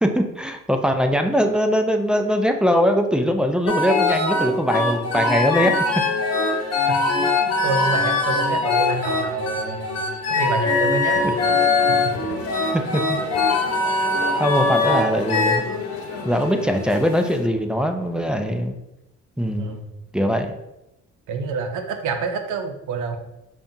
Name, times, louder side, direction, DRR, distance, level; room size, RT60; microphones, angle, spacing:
voice 1, 0.0-5.7 11.2-11.3 12.7-13.2 14.0-14.1 14.4-15.6 16.2-18.7 19.4-19.8 20.1-20.5, equal, 5° right, 5 dB, 0.3 m, -21 dB
sound 1, 3.7-15.6, left 3 dB, 55° left, 0.9 m, -21 dB
sound 2, 4.8-17.3, right 4 dB, 25° right, 1.2 m, -41 dB
voice 2, 7.2-11.7 12.0-12.4 19.6-19.9 21.3-23.2, right 4 dB, 80° right, 6 dB, 0.6 m, -28 dB
sound 3, 11.1-17.5, left 6 dB, 80° left, 0.5 m, -34 dB
5.2 x 2.3 x 2.6 m, 0.90 s
cardioid pair, 90°, 30 cm